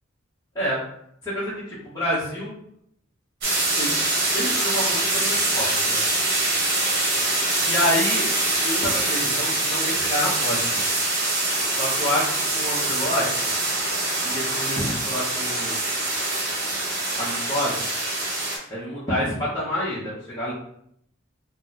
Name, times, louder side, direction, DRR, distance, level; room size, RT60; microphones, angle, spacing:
voice 1, 1.2-2.5 3.7-6.0 7.6-8.2 8.6-10.8 11.7-13.5 14.2-16.0 17.2-17.9 18.7-20.5, equal, 15° left, -11 dB, 0.8 m, -28 dB
sound 1, 3.4-18.6, right 2 dB, 50° right, 0.9 m, -24 dB
2.9 x 2.0 x 3.9 m, 0.70 s
head